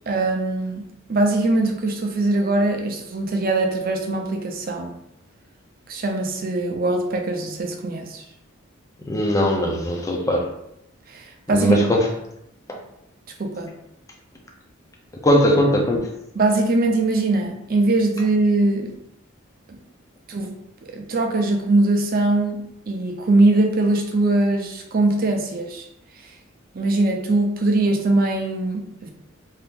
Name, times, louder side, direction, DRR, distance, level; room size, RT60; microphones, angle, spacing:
voice 1, 0.1-0.8 1.1-4.9 5.9-8.2 11.1-11.8 13.4-13.7 16.3-18.9 19.7-19.8 20.3-20.5 20.8-25.9 26.7-29.1, right 2 dB, 45° right, 2 dB, 0.5 m, -21 dB
voice 2, 9.1-10.5 11.5-12.1 12.7-12.8 15.2-16.1, equal, 15° left, 0 dB, 0.4 m, -19 dB
2.7 x 2.5 x 3.5 m, 0.79 s
head